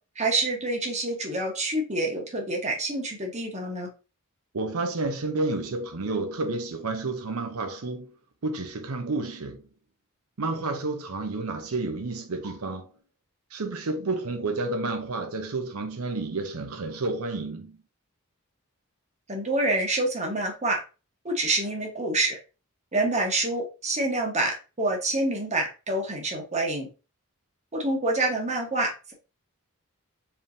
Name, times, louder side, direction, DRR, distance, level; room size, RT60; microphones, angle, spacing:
voice 1, 0.1-3.9 19.3-20.8 21.2-22.4 22.9-26.9 27.7-29.1, right 2 dB, 30° right, 1.2 m, -27 dB
voice 2, 4.5-8.1 8.4-9.6 10.4-12.9 13.5-17.8, right 3 dB, 85° right, 0.7 m, -30 dB
4.5 x 3.6 x 2.6 m
head